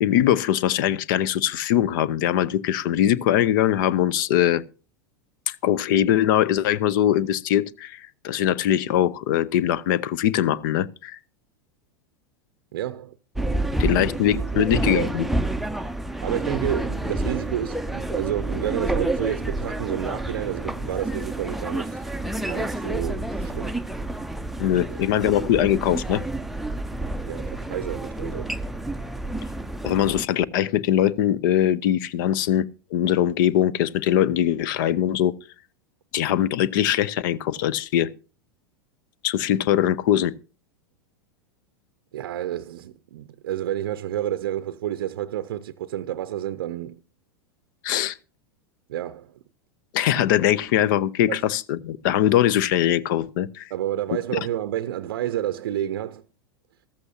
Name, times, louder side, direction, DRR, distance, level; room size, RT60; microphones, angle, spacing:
voice 1, 0.0-4.6 5.5-11.2 13.8-15.3 24.6-26.2 29.8-35.3 36.1-38.1 39.2-40.3 47.8-48.2 49.9-53.7 54.3-54.4, left 11 dB, 55° left, 0.6 m, -22 dB
voice 2, 12.7-13.1 13.4-15.1 16.2-22.0 22.4-23.8 24.9-25.0 27.2-28.5 42.1-47.0 48.9-49.3 51.3-51.4 53.7-56.2, right 12 dB, 65° right, 0.6 m, -30 dB
sound 1, 13.3-30.2, right 1 dB, ahead, 0.5 m, -29 dB
14.0 x 13.5 x 2.8 m
figure-of-eight pair, 90°, 13 cm